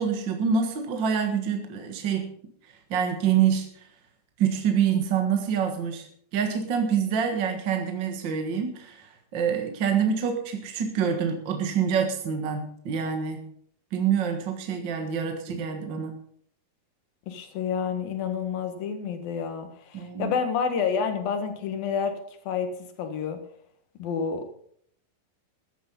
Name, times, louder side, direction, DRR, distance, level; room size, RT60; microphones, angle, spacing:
voice 1, 0.0-2.3 2.9-3.7 4.4-6.0 6.3-13.4 13.9-16.1 19.9-20.3, right 7 dB, 50° right, 4 dB, 1.4 m, -26 dB
voice 2, 17.3-22.2 22.5-22.7 23.0-23.4 24.0-24.4, left 6 dB, 75° left, 7 dB, 3.4 m, -29 dB
14.5 x 11.0 x 5.4 m, 0.64 s
omnidirectional pair, 4.2 m